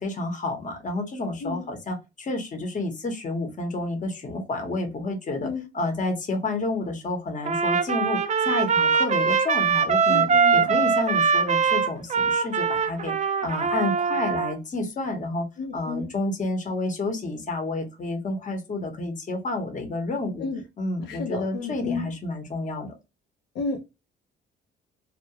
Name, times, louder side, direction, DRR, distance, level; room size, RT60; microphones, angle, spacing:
voice 1, 0.0-10.2 10.5-15.5 15.7-20.5 20.8-22.9, left 2 dB, 40° left, 0.9 m, -30 dB
Trumpet, 7.4-14.5, right 5 dB, 35° right, 0.5 m, -22 dB
voice 2, 10.1-10.8 15.6-16.1 20.4-20.6 21.0-22.1 23.5-23.8, left 3 dB, 80° left, 0.6 m, -31 dB
2.3 x 2.2 x 2.8 m
cardioid pair, 90°, 20 cm